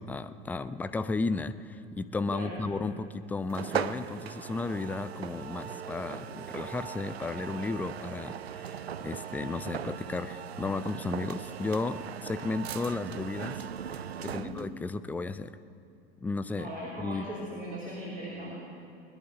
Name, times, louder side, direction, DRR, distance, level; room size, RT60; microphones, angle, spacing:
voice 1, 0.0-13.6 14.2-15.6 16.2-16.7 17.0-17.3, left 3 dB, 5° left, 12 dB, 0.3 m, -34 dB
voice 2, 2.3-2.6 14.2-14.6 16.6-18.6, right 1 dB, 25° right, -5 dB, 3.3 m, -39 dB
sound 1, 3.5-14.8, right 8 dB, 85° right, 0.5 m, -38 dB
20.5 x 11.0 x 6.2 m, 2.7 s
figure-of-eight pair, 85°, 31 cm